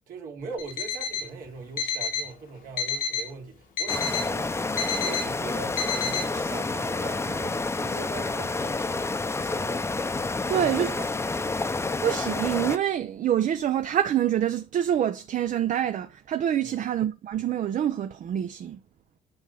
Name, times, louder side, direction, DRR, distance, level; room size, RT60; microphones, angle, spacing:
voice 1, 0.1-4.5 5.0-9.1 9.4-9.9 10.5-11.2 16.6-16.8, right 4 dB, 80° right, 2.7 m, -41 dB
Alarm, 0.6-1.3 1.8-2.3 2.8-3.3 3.8-4.3 4.8-5.3 5.8-6.3, left 6 dB, 90° left, 1.9 m, -29 dB
sound 1, 3.9-12.8, left 3 dB, 20° left, 0.7 m, -29 dB
voice 2, 10.5-10.9 12.0-18.8, right 10 dB, 60° right, 0.6 m, -26 dB
7.9 x 5.6 x 3.8 m
cardioid pair, 95°, 14 cm